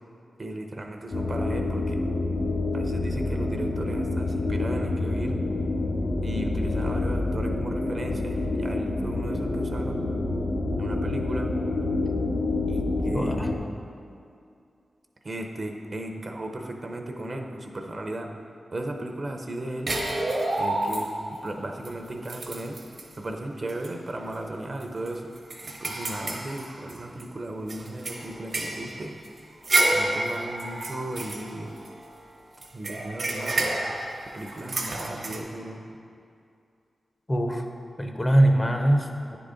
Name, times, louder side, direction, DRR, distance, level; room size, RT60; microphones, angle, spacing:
voice 1, 0.4-2.0 2.7-5.3 6.2-10.0 10.8-11.5 12.7-13.6 15.2-18.3 18.7-19.9 20.6-22.8 23.2-25.3 25.8-29.1 29.9-31.7 32.7-33.7 34.3-35.8, right 1 dB, 50° right, 3 dB, 0.7 m, -35 dB
sound 1, 1.1-13.6, left 2 dB, 65° left, 0.8 m, -27 dB
voice 2, 13.1-13.5 37.3-37.7 38.0-39.4, right 1 dB, 25° left, 4 dB, 0.7 m, -22 dB
sound 2, 19.9-21.4 21.8-21.9 22.2-23.1 23.7-23.9 24.3-24.4 24.8-27.2 27.7-32.1 32.6-35.4, right 2 dB, 65° right, 0.9 m, -29 dB
9.5 x 3.9 x 3.7 m, 2.5 s
cardioid pair, 40°, 0 cm